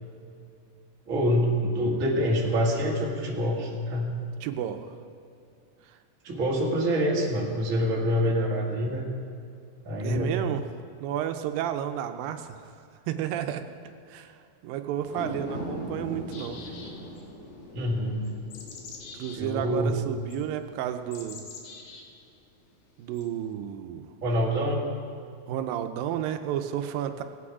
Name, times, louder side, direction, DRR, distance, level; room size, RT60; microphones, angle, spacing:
voice 1, 1.0-4.1 6.2-9.0 9.8-10.3 17.7-18.3 19.3-20.0 24.2-24.9, equal, 30° right, -3 dB, 1.7 m, -26 dB
voice 2, 4.4-4.9 5.8-6.0 10.0-10.6 11.0-12.6 13.1-13.6 14.1-14.4 14.6-16.6 19.2-21.4 23.0-24.1 25.5-27.2, right 10 dB, 90° right, 8 dB, 2.4 m, -31 dB
sound 1, 15.0-21.5 21.9-22.0, equal, 30° left, 4.2 m, -41 dB
sound 2, 16.3-17.2 18.2-19.4 20.3-20.4 21.1-22.0 23.1-23.2, left 4 dB, 85° left, 3.1 m, -44 dB
19.0 x 8.6 x 4.8 m, 2.4 s
omnidirectional pair, 4.0 m